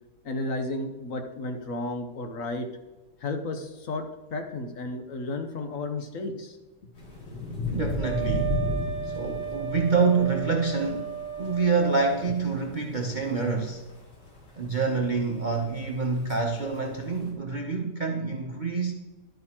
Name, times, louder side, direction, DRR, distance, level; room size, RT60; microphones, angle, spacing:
voice 1, 0.2-2.8 3.2-6.6, left 2 dB, 55° left, 5 dB, 1.2 m, -33 dB
sound 1, 7.0-17.3, left 2 dB, 75° left, 3.3 m, -36 dB
voice 2, 7.7-8.6 9.0-13.8 14.5-18.9, right 4 dB, 45° right, 2 dB, 0.6 m, -27 dB
Wind instrument woodwind instrument, 8.0-12.2, right 9 dB, 40° left, 1.9 m, -34 dB
11.5 x 9.0 x 2.9 m, 1.2 s
omnidirectional pair, 1.8 m